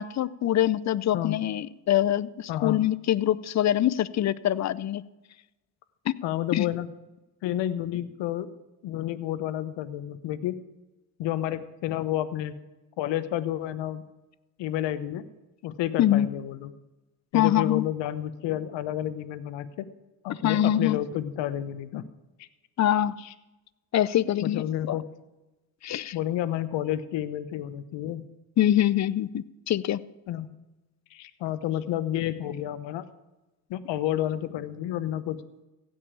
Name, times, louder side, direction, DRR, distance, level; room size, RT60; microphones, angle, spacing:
voice 1, 0.0-5.0 6.1-6.2 6.5-6.6 16.0-16.3 17.3-17.8 20.4-21.0 22.8-23.1 23.9-24.9 25.8-26.1 28.6-30.0, left 12 dB, 35° left, 19 dB, 0.6 m, -24 dB
voice 2, 2.5-2.8 6.2-6.9 7.4-8.5 8.8-10.6 11.2-12.5 13.0-14.0 14.6-15.3 15.6-16.7 17.3-19.9 20.2-22.0 22.4-22.5 23.2-23.3 24.4-25.0 26.1-28.2 30.3-30.5 31.1-33.0 33.7-35.4, left 12 dB, 65° left, 14 dB, 1.0 m, -30 dB
15.5 x 5.5 x 8.6 m, 1.1 s
supercardioid pair, 70°, 46 cm